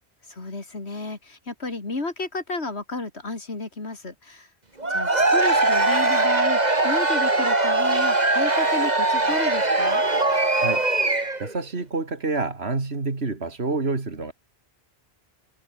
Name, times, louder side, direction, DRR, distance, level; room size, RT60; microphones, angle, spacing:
voice 1, 0.3-4.5 4.9-10.0, left 3 dB, 80° left, 3.6 m, -32 dB
Cheering / Crowd, 4.8-11.5, right 2 dB, 40° right, 2.8 m, -21 dB
voice 2, 10.5-14.3, right 3 dB, 75° right, 3.0 m, -28 dB
omnidirectional pair, 1.1 m